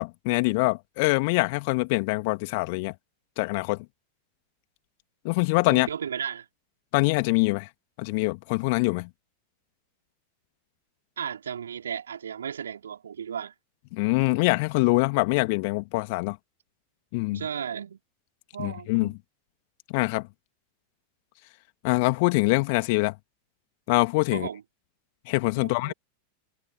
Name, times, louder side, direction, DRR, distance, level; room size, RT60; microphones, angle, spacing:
voice 1, 0.0-2.9 3.4-3.8 5.2-5.9 6.9-7.7 8.0-9.1 13.9-16.4 17.1-17.4 18.6-19.1 19.9-20.3 21.8-23.1 23.9-24.5 25.3-25.9, left 27 dB, 45° left, 2.2 m, -24 dB
voice 2, 5.7-6.5 11.2-13.5 17.3-18.0 18.5-19.2 24.3-24.6 25.6-25.9, right 8 dB, 65° right, 5.1 m, -35 dB
figure-of-eight pair, 90°, 0 cm